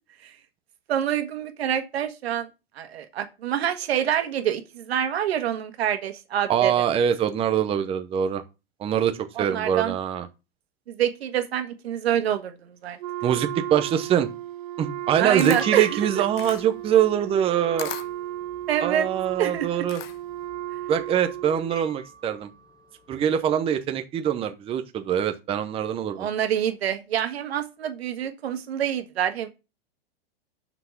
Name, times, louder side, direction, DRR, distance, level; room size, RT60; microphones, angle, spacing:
voice 1, 0.9-2.5 2.7-6.7 9.3-9.9 10.9-13.0 15.2-15.9 18.7-19.1 19.4-19.8 26.2-29.5, right 10 dB, 80° right, 1.6 m, -26 dB
voice 2, 6.5-8.4 8.8-10.3 13.2-14.3 14.8-17.9 18.8-20.0 20.9-22.5 23.1-26.3, right 9 dB, 20° right, 0.7 m, -24 dB
Wind instrument woodwind instrument, 13.0-21.8, right 13 dB, 55° right, 0.9 m, -35 dB
Camera, 15.0-20.4, left 11 dB, 70° left, 1.1 m, -40 dB
sound 1, 15.0-23.5, right 1 dB, 10° left, 1.2 m, -48 dB
6.0 x 5.7 x 5.8 m
hypercardioid pair, 135°, 31 cm